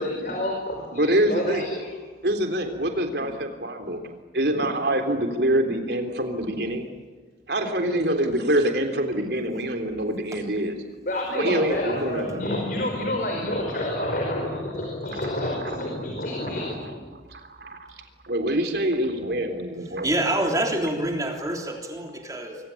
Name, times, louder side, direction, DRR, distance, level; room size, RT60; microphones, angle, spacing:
voice 1, 0.0-1.9 7.6-8.0 11.0-17.1 20.9-21.0, left 1 dB, 50° left, 1 dB, 5.1 m, -29 dB
voice 2, 0.9-1.7 2.2-4.0 4.3-6.9 7.5-10.7 11.4-12.4 17.3-17.8 18.2-20.1, right 1 dB, 65° right, 5 dB, 3.6 m, -25 dB
voice 3, 20.0-22.6, right 1 dB, 20° right, 2 dB, 3.3 m, -26 dB
25.5 x 24.0 x 8.7 m, 1.4 s
head